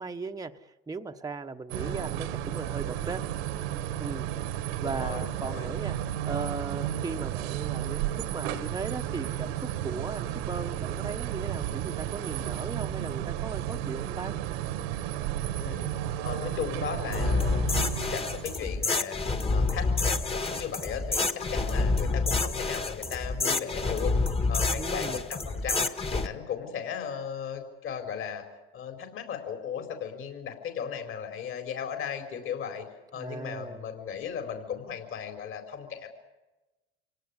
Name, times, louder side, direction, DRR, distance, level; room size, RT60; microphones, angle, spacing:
voice 1, 0.0-3.2 4.0-4.3 4.8-6.0 6.3-14.3 24.8-25.2 33.1-33.8, right 4 dB, 10° right, 5 dB, 1.1 m, -37 dB
sound 1, 1.7-18.7, right 11 dB, 80° right, 1.8 m, -33 dB
voice 2, 1.8-2.2 4.8-5.7 15.5-19.2 19.5-28.4 28.7-32.8 33.1-36.1, left 8 dB, 45° left, 5 dB, 4.6 m, -37 dB
sound 2, 17.1-26.3, left 3 dB, 20° left, 1.8 m, -28 dB
26.0 x 18.0 x 9.8 m, 1.1 s
supercardioid pair, 95°, 29 cm